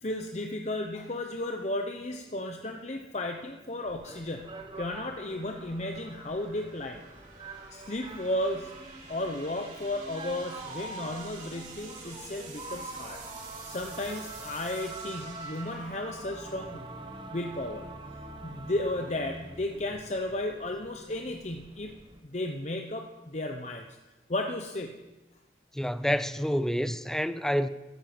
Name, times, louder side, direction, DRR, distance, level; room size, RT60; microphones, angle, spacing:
voice 1, 0.0-4.5 4.8-7.0 7.7-8.7 9.1-13.2 13.6-16.9 17.3-17.9 18.4-21.9 22.2-24.0 24.3-24.9, left 1 dB, 40° left, 0.9 m, -34 dB
sound 1, 1.9-17.3, right 4 dB, 45° right, 4.6 m, -50 dB
sound 2, 3.9-22.2, right 2 dB, 30° right, 1.3 m, -45 dB
voice 2, 25.7-27.7, equal, 5° left, 0.5 m, -28 dB
15.0 x 12.5 x 6.1 m
head